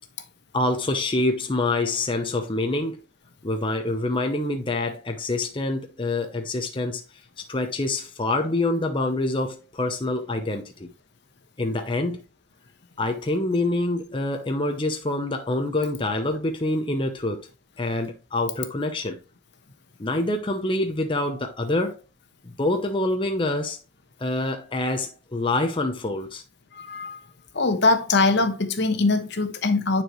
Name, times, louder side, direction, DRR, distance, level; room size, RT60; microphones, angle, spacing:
voice 1, 0.5-3.0 3.4-7.0 7.5-10.9 11.6-12.2 13.0-17.4 17.8-19.2 20.0-22.0 22.6-23.8 24.2-26.4, left 2 dB, 25° left, 0.7 m, -26 dB
voice 2, 26.7-27.2 27.5-30.0, left 3 dB, 55° left, 1.1 m, -22 dB
9.7 x 4.6 x 3.1 m
head